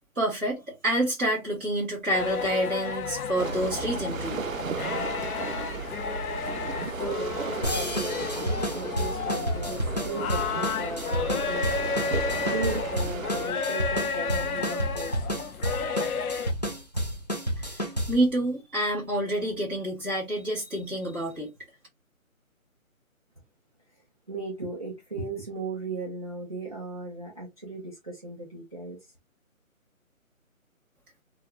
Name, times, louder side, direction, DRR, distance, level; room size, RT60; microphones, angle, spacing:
voice 1, 0.1-4.4 17.6-17.8 18.1-21.5, right 1 dB, 10° right, 0.9 m, -28 dB
sound 1, 2.1-16.5, left 5 dB, 85° left, 0.6 m, -32 dB
sound 2, 3.4-13.5, right 5 dB, 70° right, 0.7 m, -35 dB
voice 2, 7.0-11.7 12.3-15.2 24.3-29.1, right 3 dB, 25° right, 0.5 m, -36 dB
sound 3, 7.6-18.3, equal, 30° left, 0.4 m, -31 dB
3.7 x 2.2 x 2.4 m
figure-of-eight pair, 160°, 42 cm